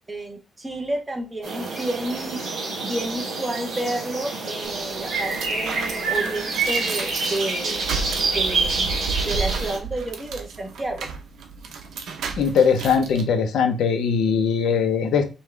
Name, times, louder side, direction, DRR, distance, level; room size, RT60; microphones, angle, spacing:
voice 1, 0.1-2.4 2.8-7.8 8.3-11.1, right 1 dB, 15° right, 3 dB, 0.8 m, -30 dB
sound 1, 1.4-9.8, right 3 dB, 60° right, 2.0 m, -27 dB
sound 2, 4.7-13.2, right 5 dB, 90° right, 0.7 m, -33 dB
voice 2, 12.4-15.2, left 6 dB, 80° left, 6 dB, 0.7 m, -20 dB
5.3 x 2.3 x 3.3 m, 0.31 s
wide cardioid pair, 175°, 0 cm